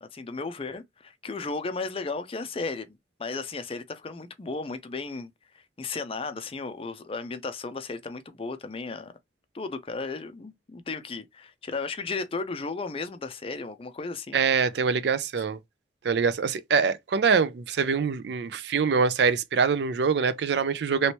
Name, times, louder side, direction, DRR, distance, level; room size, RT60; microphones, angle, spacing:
voice 1, 0.0-9.1 9.5-14.4, left 3 dB, 30° left, 0.4 m, -35 dB
voice 2, 14.3-15.6 16.0-21.1, right 5 dB, 65° right, 0.4 m, -24 dB
3.1 x 3.0 x 2.9 m
head